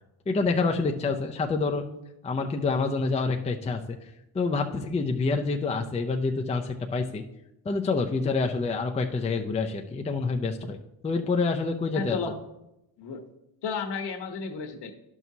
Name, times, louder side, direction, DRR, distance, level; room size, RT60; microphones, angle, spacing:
voice 1, 0.3-1.8 2.2-4.0 4.3-7.2 7.6-10.8 11.0-12.2, left 4 dB, 15° left, 2 dB, 0.5 m, -27 dB
voice 2, 11.9-12.4 13.0-13.2 13.6-14.9, left 5 dB, 55° left, 5 dB, 1.3 m, -33 dB
11.0 x 6.0 x 2.8 m, 0.89 s
supercardioid pair, 85°, 49 cm